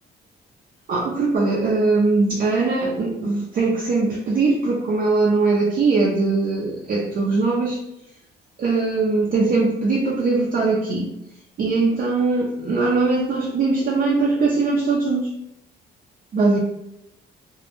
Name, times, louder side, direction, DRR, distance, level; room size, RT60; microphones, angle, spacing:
voice 1, 0.9-7.8 8.6-11.1 11.6-15.3 16.3-16.6, right 3 dB, 45° right, -4 dB, 0.5 m, -21 dB
2.1 x 2.0 x 2.9 m, 0.82 s
cardioid pair, 90°, 20 cm